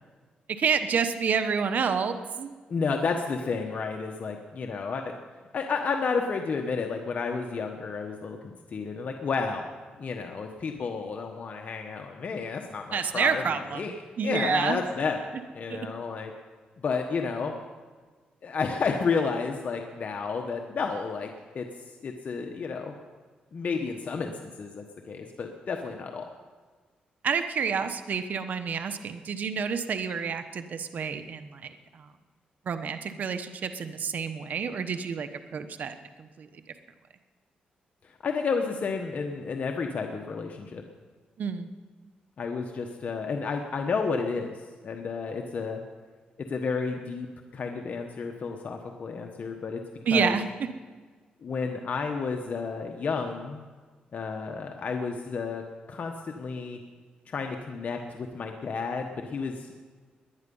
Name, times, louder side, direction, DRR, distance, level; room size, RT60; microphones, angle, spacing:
voice 1, 0.5-2.6 12.9-13.8 14.2-14.8 15.7-15.8 27.2-32.1 32.7-36.5 41.4-41.7 50.1-50.4, right 6 dB, 60° right, 9 dB, 1.0 m, -29 dB
voice 2, 2.7-5.1 5.5-15.2 15.5-16.3 16.8-17.5 18.4-21.3 21.5-21.7 22.0-22.9 23.5-26.2 38.0-40.8 42.4-45.8 46.5-47.3 47.5-49.8 50.1-50.4 51.4-53.7 54.1-56.8 57.3-59.7, left 5 dB, 55° left, 3 dB, 1.2 m, -31 dB
18.5 x 11.0 x 5.5 m, 1.4 s
cardioid pair, 80°, 3 cm